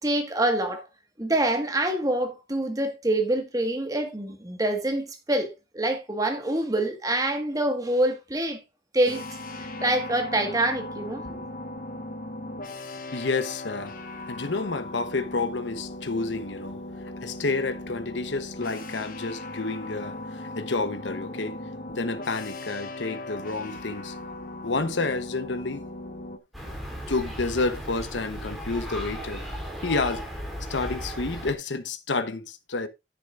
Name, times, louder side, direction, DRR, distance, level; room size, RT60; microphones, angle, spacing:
voice 1, 0.0-0.8 1.2-8.6 8.9-9.3 9.6-11.4, right 1 dB, 20° right, 1.8 m, -26 dB
sound 1, 9.0-26.4, left 2 dB, 50° left, 1.4 m, -38 dB
voice 2, 13.1-13.9 14.3-16.8 17.2-21.6 21.9-25.8 27.1-29.4 29.8-30.3 30.7-32.9, left 3 dB, 90° left, 1.1 m, -30 dB
sound 2, 26.5-31.5, equal, ahead, 3.5 m, -36 dB
10.5 x 10.0 x 2.6 m
head